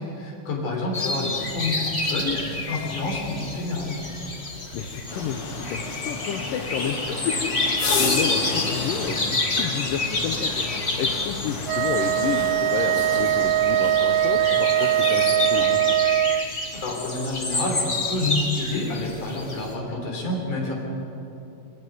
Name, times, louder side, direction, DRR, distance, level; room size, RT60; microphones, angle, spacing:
voice 1, 0.0-4.0 16.7-20.7, left 2 dB, 65° left, 0 dB, 5.3 m, -28 dB
sound 1, 0.9-19.7, left 2 dB, 30° left, 1.3 m, -29 dB
voice 2, 4.7-7.5 8.0-10.6 11.0-15.8, left 7 dB, 85° left, 4 dB, 2.6 m, -30 dB
sound 2, 5.1-16.0, left 4 dB, 50° left, 2.3 m, -32 dB
Wind instrument woodwind instrument, 11.7-16.5, right 12 dB, 85° right, 2.3 m, -21 dB
28.0 x 10.0 x 9.4 m, 2.8 s
omnidirectional pair, 3.9 m